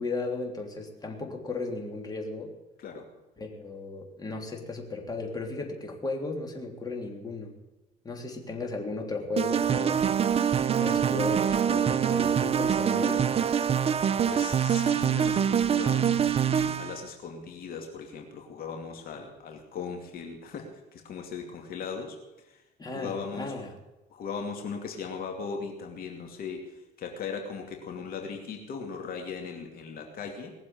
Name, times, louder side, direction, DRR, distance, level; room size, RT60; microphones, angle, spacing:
voice 1, 0.0-2.5 3.4-7.5 8.1-10.0 10.8-13.4 22.8-23.7, left 3 dB, 25° left, 2 dB, 3.4 m, -35 dB
voice 2, 2.8-3.2 14.3-22.6 22.9-23.6 24.1-30.5, left 5 dB, 60° left, 3 dB, 2.5 m, -38 dB
sound 1, 9.4-17.0, right 8 dB, 35° right, 0.7 m, -25 dB
19.5 x 7.5 x 9.3 m, 1.1 s
cardioid pair, 110°, 17 cm